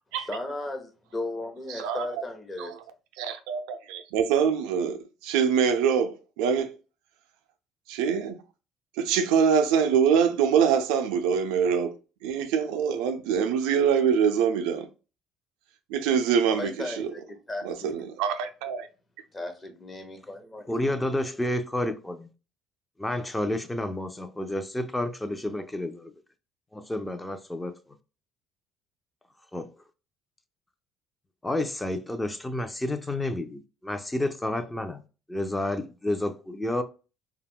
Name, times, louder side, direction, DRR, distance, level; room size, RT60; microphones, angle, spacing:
voice 1, 0.3-2.7 16.5-17.2 17.5-18.0 19.3-21.0, left 2 dB, 30° left, 0.8 m, -36 dB
voice 2, 1.7-2.1 2.6-2.7 3.2-6.7 7.9-8.4 9.0-12.0 12.2-14.9 15.9-17.1 17.6-18.9, right 7 dB, 80° right, 0.3 m, -24 dB
voice 3, 20.7-22.3 23.0-26.1 26.7-27.8 29.5-29.7 31.4-35.0 35.3-36.8, left 1 dB, 10° left, 0.4 m, -30 dB
2.3 x 2.1 x 3.5 m
supercardioid pair, 70°, 0 cm